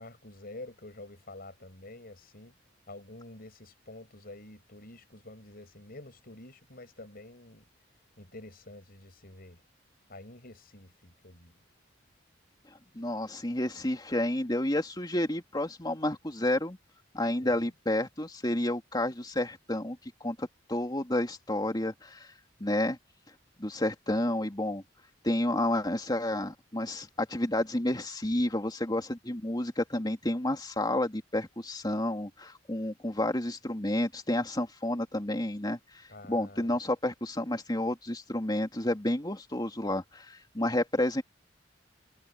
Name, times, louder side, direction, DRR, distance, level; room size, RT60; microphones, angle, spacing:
voice 1, 0.0-2.5 2.9-7.6 8.2-9.6 10.1-11.6 17.4-17.7 36.1-36.7, left 2 dB, 50° left, 6.4 m, -48 dB
voice 2, 12.9-16.8 17.1-22.3 22.6-23.0 23.6-24.8 25.2-35.8 36.3-41.2, left 1 dB, 20° left, 2.7 m, -30 dB
head